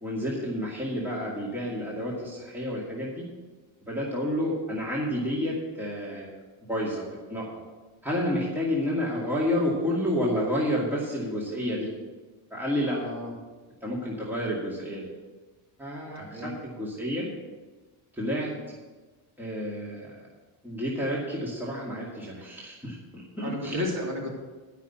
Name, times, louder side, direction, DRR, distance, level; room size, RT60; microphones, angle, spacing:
voice 1, 0.0-3.3 3.9-6.3 6.7-7.5 8.0-11.9 12.5-13.0 13.8-15.1 15.8-17.3 18.2-18.5 19.4-20.3 20.6-23.2 23.6-23.8, equal, 5° right, -5 dB, 2.3 m, -30 dB
voice 2, 12.8-13.3 16.2-16.5 23.4-24.3, left 1 dB, 35° right, -2 dB, 3.5 m, -33 dB
12.0 x 5.8 x 8.1 m, 1.3 s
cardioid pair, 135°, 46 cm